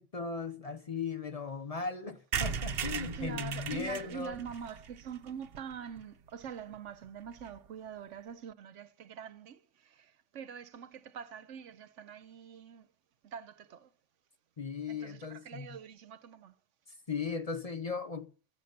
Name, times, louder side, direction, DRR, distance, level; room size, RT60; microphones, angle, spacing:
voice 1, 0.0-4.4 14.6-15.7 17.1-18.3, left 5 dB, 35° left, 0.7 m, -37 dB
sound 1, 2.3-6.0 6.4-6.5 6.7-6.8 7.0-7.1 7.3-7.6, right 6 dB, 60° right, 0.9 m, -38 dB
voice 2, 3.1-12.9 13.2-13.9 14.9-16.5, right 7 dB, 85° right, 1.2 m, -45 dB
14.5 x 7.8 x 6.6 m
omnidirectional pair, 1.2 m